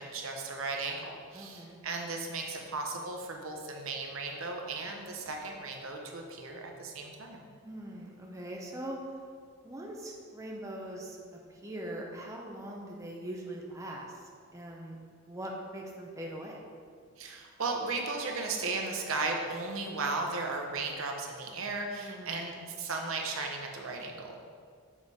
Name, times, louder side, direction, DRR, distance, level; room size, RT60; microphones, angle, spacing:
voice 1, 0.0-7.5 17.2-24.4, right 3 dB, 80° right, 2 dB, 0.9 m, -36 dB
voice 2, 1.3-1.8 7.6-9.0 9.6-11.2 11.5-14.1 14.5-15.0 15.3-16.6 22.0-22.4, right 1 dB, 15° right, -1 dB, 0.7 m, -41 dB
7.3 x 4.2 x 4.8 m, 2.1 s
head